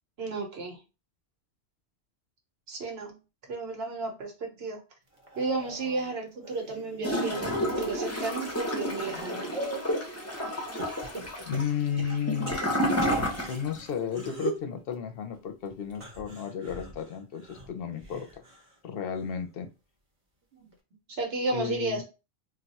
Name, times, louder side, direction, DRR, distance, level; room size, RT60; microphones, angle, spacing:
voice 1, 0.2-0.8 2.7-3.2 3.4-4.8 5.4-9.5 20.6-20.7 21.1-22.0, right 3 dB, 65° right, 2 dB, 1.1 m, -33 dB
sound 1, 5.1-7.5 8.0-9.9 10.8-13.6 14.1-14.7 15.9-18.8 19.1-19.6 20.7-20.8, right 3 dB, 35° right, 0.7 m, -41 dB
Gurgling / Toilet flush, 7.0-13.9 14.2-14.3, equal, 20° left, 0.5 m, -30 dB
voice 2, 11.4-12.6 13.4-18.4 18.8-19.7 21.5-22.0, left 8 dB, 65° left, 8 dB, 0.7 m, -33 dB
2.3 x 2.3 x 3.9 m, 0.30 s
omnidirectional pair, 1.1 m